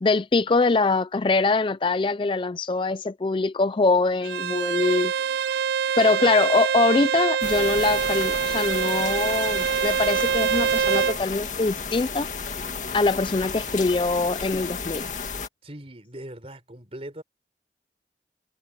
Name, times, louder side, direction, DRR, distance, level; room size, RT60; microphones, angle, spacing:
voice 1, 0.0-5.1 6.0-12.3 12.9-15.1, left 3 dB, 30° left, 0.4 m, -23 dB
Bowed string instrument, 4.2-11.2, right 7 dB, 75° right, 0.3 m, -25 dB
sound 1, 7.4-15.5, left 5 dB, 45° left, 2.3 m, -33 dB
voice 2, 15.6-17.2, right 1 dB, 35° right, 4.3 m, -40 dB
head